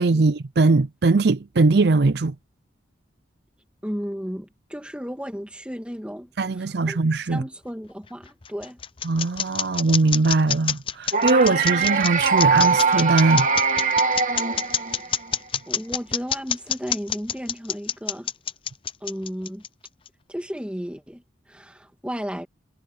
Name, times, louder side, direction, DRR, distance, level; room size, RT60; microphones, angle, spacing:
voice 1, 0.0-2.3 6.4-7.4 9.0-13.5, right 3 dB, 55° right, 0.5 m, -20 dB
voice 2, 3.8-7.0 7.3-8.8 15.7-18.3 19.0-19.6 20.3-22.5, equal, 5° right, 2.4 m, -34 dB
sound 1, 8.0-20.1, left 8 dB, 30° left, 0.6 m, -27 dB
sound 2, 11.1-15.3, right 5 dB, 40° right, 2.2 m, -21 dB
head